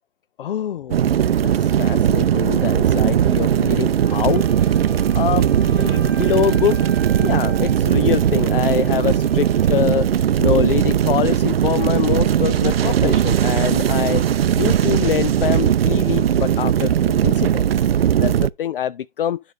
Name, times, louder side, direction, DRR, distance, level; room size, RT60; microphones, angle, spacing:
voice 1, 0.4-1.2 1.4-4.9 5.1-6.9 7.2-17.9 18.2-19.4, left 10 dB, 70° left, 0.4 m, -25 dB
sound 1, 0.9-18.5, right 9 dB, 90° right, 0.5 m, -18 dB
Wind instrument woodwind instrument, 4.0-9.9, right 6 dB, 20° right, 0.5 m, -38 dB
10.0 x 5.3 x 3.1 m
hypercardioid pair, 165°, 29 cm